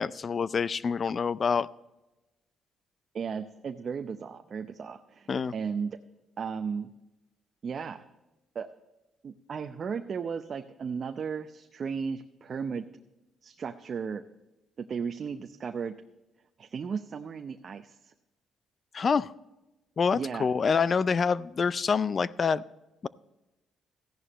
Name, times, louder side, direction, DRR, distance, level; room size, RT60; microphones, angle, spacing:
voice 1, 0.0-1.7 5.3-5.5 18.9-19.3 20.0-22.6 23.0-23.1, left 5 dB, 45° left, 19 dB, 0.4 m, -26 dB
voice 2, 3.1-6.0 6.4-6.9 7.6-8.0 8.5-8.7 9.2-12.9 13.4-14.2 14.8-15.9 16.6-18.1 20.1-20.5, right 6 dB, 50° right, 7 dB, 0.6 m, -35 dB
14.5 x 11.0 x 3.0 m, 1.0 s
cardioid pair, 90°, 0 cm